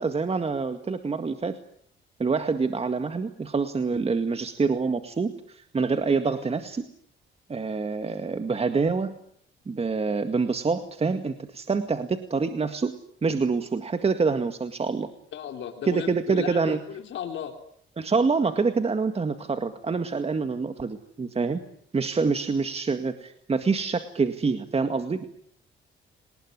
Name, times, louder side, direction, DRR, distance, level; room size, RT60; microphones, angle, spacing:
voice 1, 0.0-1.6 2.2-6.8 7.5-9.2 9.7-12.9 13.2-15.1 15.9-16.8 18.0-21.6 21.9-25.2, right 4 dB, 30° right, 8 dB, 2.0 m, -26 dB
voice 2, 15.3-17.5, left 9 dB, 70° left, 4 dB, 3.4 m, -35 dB
28.5 x 20.0 x 9.7 m, 0.66 s
cardioid pair, 90°, 20 cm